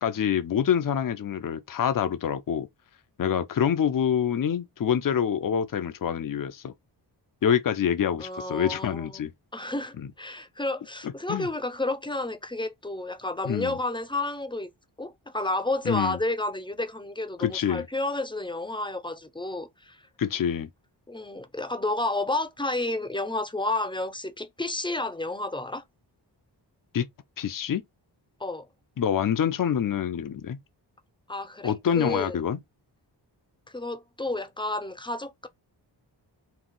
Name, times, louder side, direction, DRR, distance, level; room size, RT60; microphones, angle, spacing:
voice 1, 0.0-2.7 3.2-6.7 7.4-9.3 11.3-11.5 13.5-13.8 15.9-16.2 17.4-17.9 20.2-20.7 26.9-27.1 27.4-27.8 29.0-30.6 31.6-32.6, left 8 dB, 45° left, 0.6 m, -26 dB
voice 2, 8.2-9.2 9.5-14.7 15.0-20.0 21.1-25.8 28.4-28.7 31.3-32.4 33.7-35.5, left 2 dB, 10° left, 0.6 m, -31 dB
4.1 x 2.3 x 3.8 m
cardioid pair, 70°, 45 cm